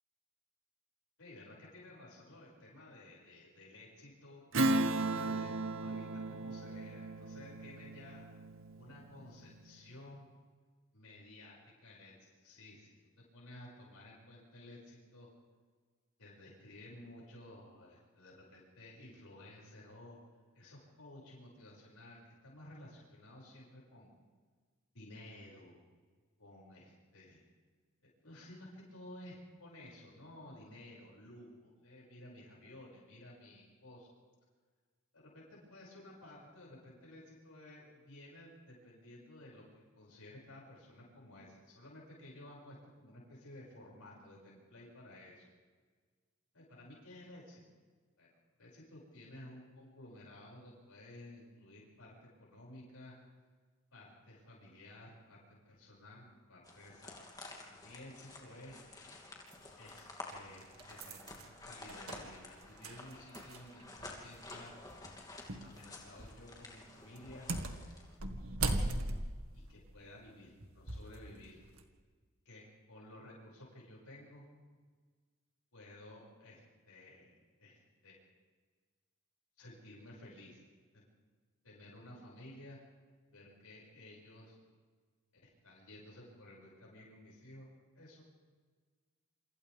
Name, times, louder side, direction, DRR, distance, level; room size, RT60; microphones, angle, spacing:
voice 1, 1.2-8.4 8.8-10.2 10.9-15.3 16.2-20.2 20.5-24.1 24.9-25.8 26.4-27.4 28.0-34.1 35.1-45.5 46.5-47.6 48.2-48.3 48.6-53.1 53.9-55.4 55.6-57.2 57.7-58.8 59.8-61.2 61.6-64.7 65.6-67.5 69.5-71.6 72.5-74.5 75.7-76.6 76.9-78.2 79.6-80.6 80.9-81.0 81.6-82.8 83.3-84.6 85.6-88.2, left 1 dB, 90° left, -4 dB, 6.9 m, -54 dB
Strum, 4.5-9.4, right 2 dB, 65° right, 0.9 m, -35 dB
sound 1, 56.6-68.2, left 2 dB, 15° left, 2.9 m, -51 dB
sound 2, 59.5-59.6 60.3-63.8 64.1-64.2 65.5-65.7 66.1-66.5 67.2-71.2 71.6-71.8, right 2 dB, 90° right, 2.0 m, -39 dB
28.5 x 25.5 x 3.7 m, 1.5 s
head